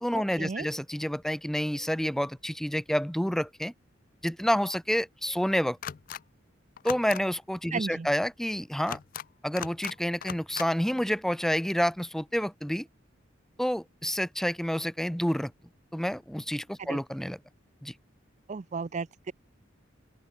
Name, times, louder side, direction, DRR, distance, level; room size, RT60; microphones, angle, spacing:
voice 1, 0.0-3.7 4.2-5.8 6.8-9.0 9.4-12.9 13.6-15.5 15.9-17.4 17.8-17.9, equal, ahead, 0.6 m, -29 dB
sound 1, 5.8-6.2 6.8-7.2 8.8-9.3 9.6-9.9 10.2-10.7, left 9 dB, 45° left, 0.4 m, -38 dB
voice 2, 7.7-8.1 16.9-17.0 18.5-19.3, right 4 dB, 40° right, 0.4 m, -34 dB
open air
head